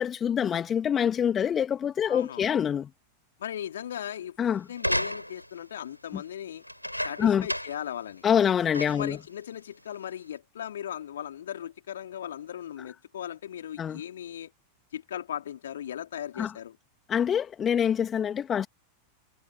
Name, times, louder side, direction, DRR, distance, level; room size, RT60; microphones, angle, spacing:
voice 1, 0.0-2.9 4.4-4.6 7.2-7.5 8.2-9.2 13.8-14.0 16.4-16.5 17.1-18.7, left 8 dB, 25° left, 3.0 m, -25 dB
voice 2, 2.1-2.5 3.4-4.4 4.7-6.6 7.0-8.2 8.9-14.5 14.9-16.8, left 10 dB, 65° left, 3.2 m, -38 dB
sound 1, 4.8-5.6 6.6-7.9 8.3-8.4 8.7-9.2 9.9-10.0, equal, 90° left, 7.9 m, -32 dB
figure-of-eight pair, 90°, 0 cm